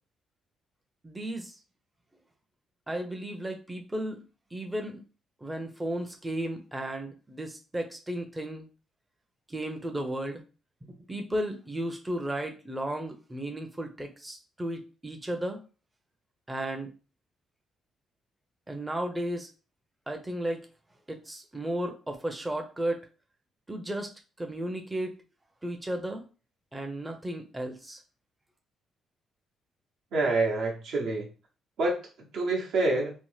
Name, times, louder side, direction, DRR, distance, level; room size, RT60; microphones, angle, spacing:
voice 1, 1.0-1.6 2.9-4.2 4.5-5.0 5.4-8.7 9.5-10.4 11.1-15.6 16.5-16.9 18.7-19.5 20.1-20.7 21.1-23.0 23.7-24.1 24.4-25.2 25.6-26.2 26.7-28.0, right 1 dB, 10° right, 4 dB, 0.5 m, -34 dB
voice 2, 30.1-31.3 31.8-33.1, right 2 dB, 75° right, 0 dB, 0.9 m, -27 dB
2.7 x 2.1 x 3.2 m, 0.35 s
cardioid pair, 90°, 0 cm